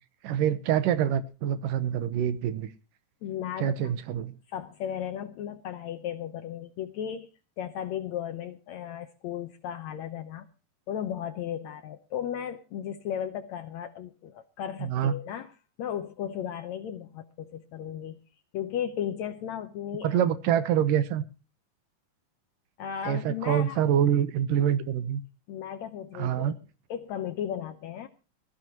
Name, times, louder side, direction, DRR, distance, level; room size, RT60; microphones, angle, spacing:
voice 1, 0.2-2.7 3.6-4.3 14.8-15.1 20.0-21.2 23.1-25.2 26.2-26.6, right 10 dB, 80° right, 13 dB, 2.6 m, -26 dB
voice 2, 3.2-3.9 4.5-7.3 7.6-10.5 10.9-15.5 15.8-18.2 18.5-20.2 22.8-23.8 25.5-26.5 26.9-28.1, left 9 dB, 70° left, 9 dB, 1.9 m, -35 dB
21.0 x 14.5 x 3.0 m, 0.33 s
omnidirectional pair, 3.8 m